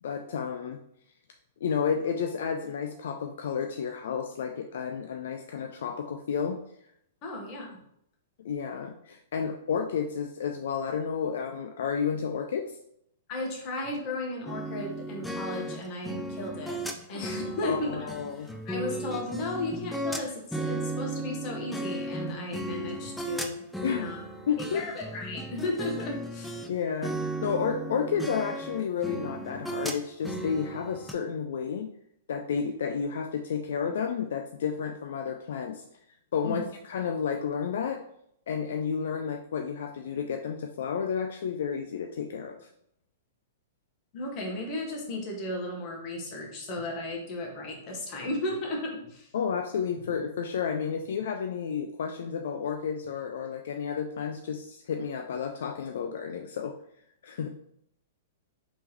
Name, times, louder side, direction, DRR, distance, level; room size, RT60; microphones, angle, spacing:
voice 1, 0.0-0.8 1.6-6.6 8.4-12.8 17.1-17.3 17.6-18.5 23.8-24.1 24.5-24.9 26.7-31.9 32.3-35.8 36.3-38.0 38.5-42.7 49.3-56.7 57.2-57.5, left 6 dB, 70° left, 4 dB, 0.3 m, -31 dB
voice 2, 7.2-7.8 13.3-16.8 17.1-18.1 18.3-24.2 24.6-26.7 36.4-36.6 44.1-49.3, left 2 dB, 40° left, 0 dB, 1.2 m, -35 dB
sound 1, 14.5-26.7 27.0-31.1, right 1 dB, ahead, 0.4 m, -35 dB
3.4 x 3.1 x 3.1 m, 0.73 s
hypercardioid pair, 125°, 0 cm